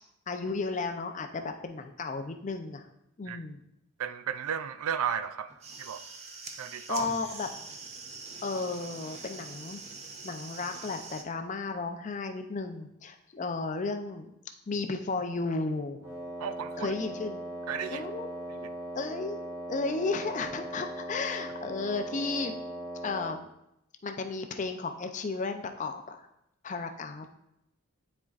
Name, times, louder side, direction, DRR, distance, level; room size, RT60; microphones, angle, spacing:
voice 1, 0.3-2.9 3.2-3.6 6.9-7.5 8.4-9.8 10.2-14.3 14.7-16.0 16.8-17.4 17.9-18.3 18.9-19.4 19.7-22.5 23.0-23.5 24.0-26.3 26.6-27.3, left 3 dB, 35° left, 0.4 m, -34 dB
voice 2, 4.0-6.0 6.6-7.1 16.4-16.9 17.7-18.1 18.5-18.7, right 8 dB, 85° right, 0.4 m, -34 dB
sound 1, 5.5-11.2, right 4 dB, 30° right, 0.5 m, -44 dB
Wind instrument woodwind instrument, 16.0-23.4, right 1 dB, 15° right, 1.6 m, -39 dB
9.4 x 4.4 x 2.4 m
head